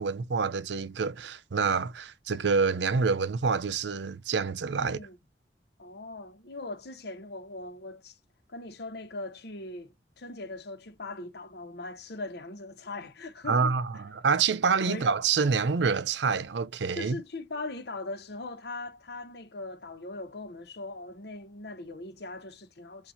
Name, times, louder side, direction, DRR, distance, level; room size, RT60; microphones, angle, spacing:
voice 1, 0.0-5.0 13.5-17.2, right 5 dB, 80° right, 0.6 m, -27 dB
voice 2, 4.8-5.2 5.8-8.2 8.5-13.8 14.9-15.1 17.0-23.1, left 2 dB, 65° left, 1.0 m, -40 dB
7.0 x 2.6 x 2.6 m
head